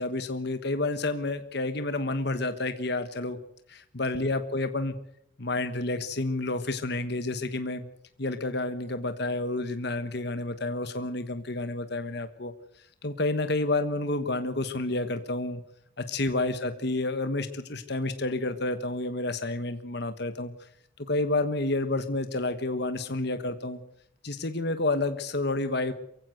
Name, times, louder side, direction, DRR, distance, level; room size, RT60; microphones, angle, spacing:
voice 1, 0.0-3.4 3.7-4.9 5.4-7.8 8.2-12.5 13.0-15.6 16.0-20.5 21.0-23.8 24.2-25.9, left 2 dB, 55° left, 9 dB, 1.3 m, -29 dB
23.5 x 16.0 x 8.0 m, 0.74 s
head